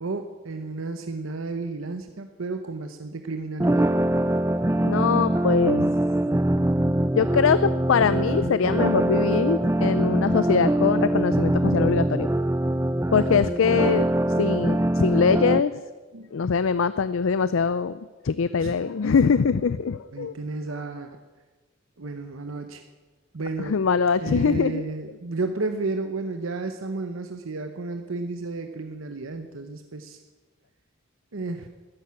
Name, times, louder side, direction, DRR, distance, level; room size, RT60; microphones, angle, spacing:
voice 1, 0.0-3.9 16.1-16.3 18.6-18.7 20.1-21.1 22.0-22.8 23.3-23.8 24.2-30.2 31.3-31.7, right 3 dB, 90° right, 7 dB, 0.9 m, -32 dB
sound 1, 3.6-15.6, right 1 dB, 10° right, 0.4 m, -23 dB
voice 2, 4.8-5.9 7.2-12.3 13.1-14.1 14.4-15.7 16.3-17.9 18.2-20.3 23.7-24.8, left 5 dB, 80° left, 15 dB, 0.5 m, -22 dB
13.5 x 10.5 x 9.7 m, 1.3 s
head